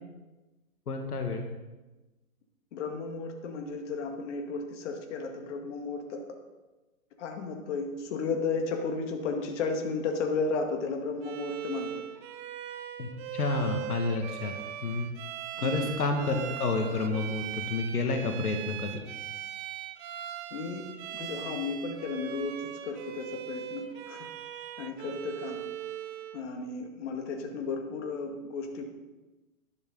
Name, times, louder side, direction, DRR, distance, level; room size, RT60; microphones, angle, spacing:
voice 1, 0.9-1.5 13.0-14.5 14.8-15.1 15.6-19.0, left 3 dB, 90° left, 3 dB, 1.9 m, -30 dB
voice 2, 2.7-6.2 7.2-12.0 15.6-16.0 20.5-24.3 24.8-25.6 26.3-28.8, left 4 dB, 50° left, 2 dB, 2.1 m, -34 dB
Bowed string instrument, 11.2-26.4, right 10 dB, 35° right, 0.8 m, -40 dB
11.5 x 11.0 x 3.9 m, 1.1 s
hypercardioid pair, 135°, 44 cm